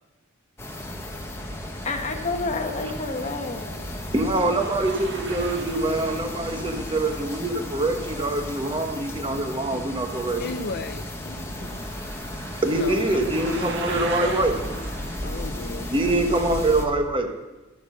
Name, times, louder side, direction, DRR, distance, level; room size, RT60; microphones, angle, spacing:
sound 1, 0.6-16.9, left 1 dB, 10° left, 1.2 m, -34 dB
voice 1, 1.3-4.0 5.8-7.2, left 3 dB, 35° left, 4 dB, 1.4 m, -32 dB
voice 2, 4.1-10.4 12.6-14.6 15.9-17.3, right 2 dB, 25° right, 5 dB, 1.2 m, -24 dB
sound 2, 4.3-16.2, right 4 dB, 60° right, 1.0 m, -40 dB
voice 3, 10.4-11.8 12.7-15.9, left 3 dB, 50° left, 6 dB, 0.6 m, -36 dB
13.5 x 7.4 x 6.6 m, 1.1 s
head